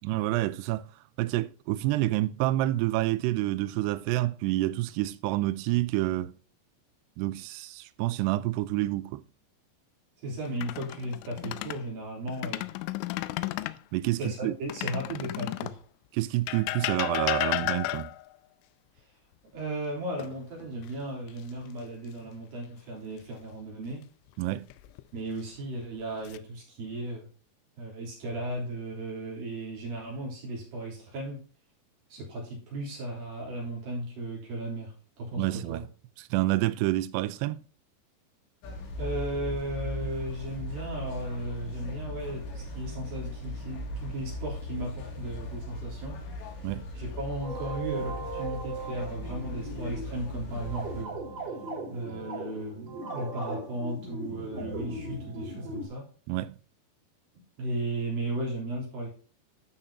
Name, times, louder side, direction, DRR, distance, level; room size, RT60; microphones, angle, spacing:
voice 1, 0.0-0.9 1.2-6.3 7.2-9.2 13.9-14.6 16.1-18.1 24.4-24.7 35.4-35.8 36.2-37.6 46.6-46.9 56.3-56.6, right 17 dB, 90° right, 2.4 m, -28 dB
voice 2, 10.2-12.7 14.1-15.8 19.5-24.0 25.1-27.3 27.8-31.4 32.1-35.8 39.0-46.5 46.9-51.2 51.9-56.1 57.6-59.1, right 1 dB, 50° right, 4.8 m, -36 dB
sound 1, 10.5-11.8 12.3-13.8 14.7-15.8 16.5-18.3 20.2-20.9 21.3-21.5 24.4-25.0 25.7-26.4, left 18 dB, 90° left, 3.0 m, -33 dB
sound 2, 38.6-51.0, left 1 dB, 70° left, 4.0 m, -38 dB
piano mixed tones, 47.4-55.9, right 2 dB, 25° right, 4.2 m, -38 dB
12.5 x 5.8 x 2.8 m
omnidirectional pair, 5.4 m